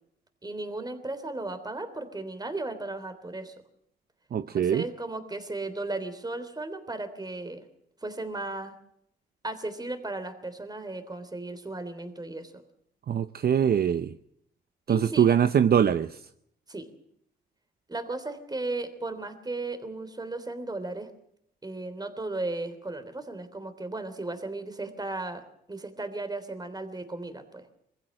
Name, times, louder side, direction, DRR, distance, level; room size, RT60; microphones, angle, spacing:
voice 1, 0.4-3.5 4.5-7.6 8.0-8.7 9.4-12.5 14.9-15.4 16.7-16.9 17.9-21.1 21.6-25.4 25.7-27.7, right 2 dB, 20° right, 10 dB, 3.3 m, -35 dB
voice 2, 4.3-4.8 13.1-14.1 14.9-16.2, right 8 dB, 55° right, 12 dB, 0.7 m, -23 dB
21.5 x 15.5 x 7.7 m, 0.72 s
cardioid pair, 70°, 19 cm